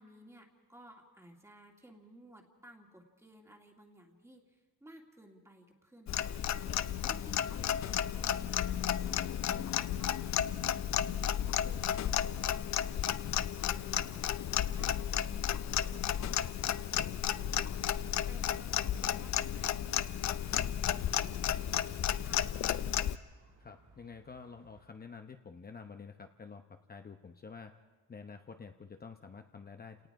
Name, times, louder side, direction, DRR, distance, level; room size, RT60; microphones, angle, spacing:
voice 1, 0.0-22.5, right 1 dB, 10° right, 1 dB, 2.3 m, -57 dB
Clock, 6.1-23.2, left 10 dB, 60° left, 0.6 m, -33 dB
sound 1, 17.0-24.8, right 3 dB, 75° right, 6.1 m, -61 dB
voice 2, 23.6-26.6 26.9-27.7 28.1-30.1, left 5 dB, 30° left, 6 dB, 0.9 m, -49 dB
29.5 x 18.5 x 4.8 m, 1.2 s
cardioid pair, 110°, 31 cm